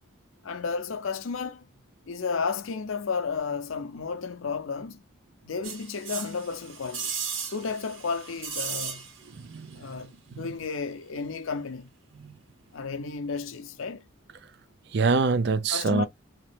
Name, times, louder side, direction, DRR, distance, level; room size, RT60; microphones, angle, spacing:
voice 1, 0.4-1.7 2.1-5.0 5.4-7.1 7.5-9.1 9.7-11.9 12.7-14.0 15.7-16.1, left 5 dB, 80° left, 0.6 m, -32 dB
sound 1, 5.6-9.4 9.7-9.8, right 6 dB, 80° right, 1.6 m, -36 dB
voice 2, 9.3-9.9 10.3-10.5 12.2-12.3 14.9-16.1, right 4 dB, 55° right, 0.4 m, -25 dB
3.1 x 2.9 x 3.2 m
head